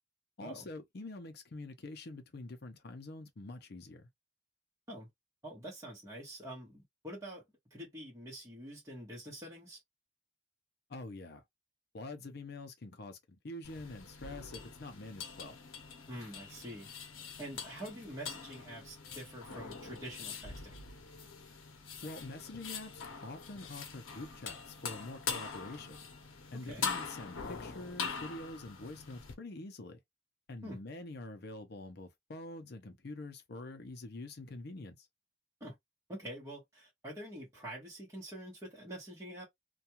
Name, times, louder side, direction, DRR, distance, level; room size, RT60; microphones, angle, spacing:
voice 1, 0.4-4.1 10.9-11.4 11.9-15.6 22.0-26.1 26.5-30.0 30.5-35.1, left 2 dB, 55° left, 0.6 m, -46 dB
voice 2, 5.4-7.4 7.7-9.8 16.1-16.9 17.4-20.8 26.5-26.9 30.6-30.8 35.6-35.8 36.1-39.5, right 1 dB, 15° right, 1.0 m, -46 dB
sound 1, 13.6-29.3, left 6 dB, 90° left, 0.7 m, -43 dB
2.3 x 2.3 x 2.8 m
head